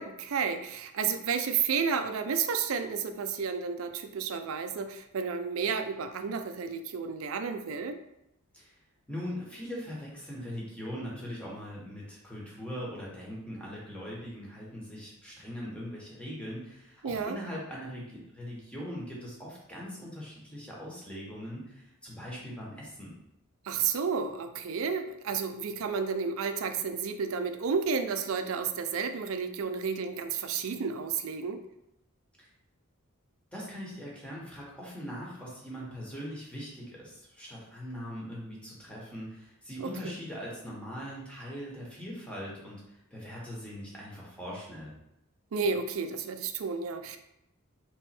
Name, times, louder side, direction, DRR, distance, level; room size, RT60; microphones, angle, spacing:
voice 1, 0.0-8.0 17.0-17.4 23.7-31.6 39.8-40.1 45.5-47.2, right 6 dB, 65° right, 8 dB, 0.4 m, -31 dB
voice 2, 9.1-23.1 32.4-32.5 33.5-44.9, equal, 5° left, -5 dB, 1.1 m, -41 dB
3.3 x 3.0 x 4.3 m, 0.86 s
head